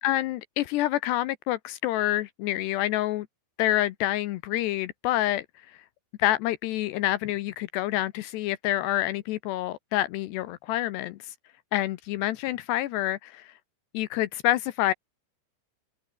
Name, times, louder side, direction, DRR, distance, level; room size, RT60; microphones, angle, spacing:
voice 1, 0.0-3.3 3.6-5.5 6.2-11.3 11.7-13.5 13.9-14.9, left 15 dB, 75° left, 2.8 m, -27 dB
open air
omnidirectional pair, 5.1 m